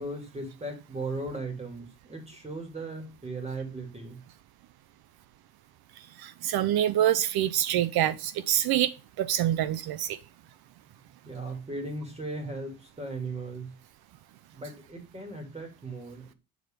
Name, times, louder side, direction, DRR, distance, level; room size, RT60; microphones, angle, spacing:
voice 1, 0.0-4.2 11.3-13.7 14.5-16.3, right 2 dB, 15° right, 2.5 m, -37 dB
voice 2, 6.2-10.2, right 12 dB, 65° right, 0.6 m, -26 dB
7.2 x 4.2 x 3.6 m
cardioid pair, 135°, 39 cm